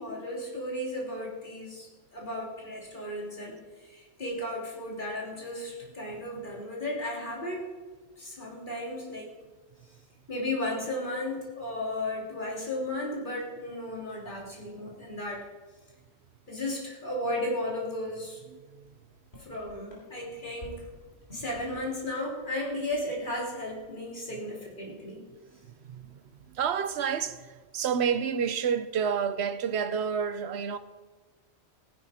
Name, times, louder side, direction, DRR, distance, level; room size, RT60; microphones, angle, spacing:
voice 1, 0.0-7.6 8.2-9.3 10.3-15.4 16.5-18.4 19.4-20.9 21.3-25.2, left 1 dB, 45° left, 3.0 m, -34 dB
voice 2, 18.5-19.0 25.5-30.8, right 7 dB, 70° right, 1.0 m, -30 dB
sound 1, 18.8-18.9 19.2-22.0 22.3-23.4 23.7-24.0, left 1 dB, 70° left, 3.5 m, -50 dB
16.5 x 10.0 x 4.3 m
omnidirectional pair, 1.2 m